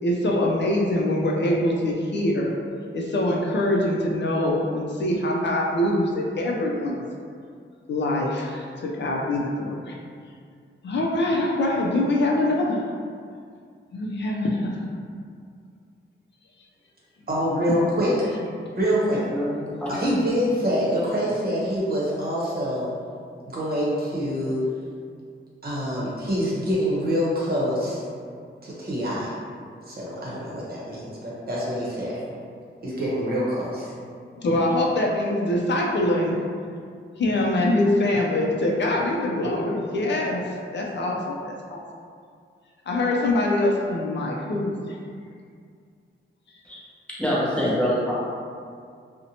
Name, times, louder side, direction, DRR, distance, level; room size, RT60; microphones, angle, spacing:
voice 1, 0.0-2.5 2.9-7.0 7.9-10.0 10.8-12.9 13.9-14.7 34.4-36.4 37.2-40.4 40.7-41.8 42.9-45.0, left 1 dB, 55° left, -2 dB, 0.4 m, -24 dB
voice 2, 17.3-18.3 18.7-19.2 19.9-22.9 23.5-24.6 25.6-28.0 28.6-29.3 29.9-32.2 32.8-33.9, equal, 45° right, -7 dB, 0.8 m, -25 dB
voice 3, 19.3-19.9 46.6-46.8 47.2-48.1, equal, 5° left, -8 dB, 0.7 m, -25 dB
2.6 x 2.1 x 2.7 m, 2.2 s
wide cardioid pair, 85°, 21 cm